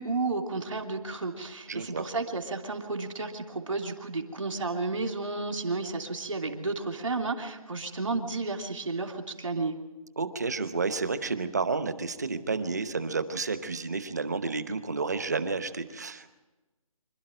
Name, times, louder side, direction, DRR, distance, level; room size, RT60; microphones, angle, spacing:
voice 1, 0.0-9.7, right 3 dB, 60° right, 4 dB, 2.9 m, -32 dB
voice 2, 1.7-2.0 10.2-16.3, right 4 dB, 30° right, 11 dB, 1.0 m, -31 dB
26.0 x 12.5 x 9.0 m, 1.1 s
hypercardioid pair, 175°, 19 cm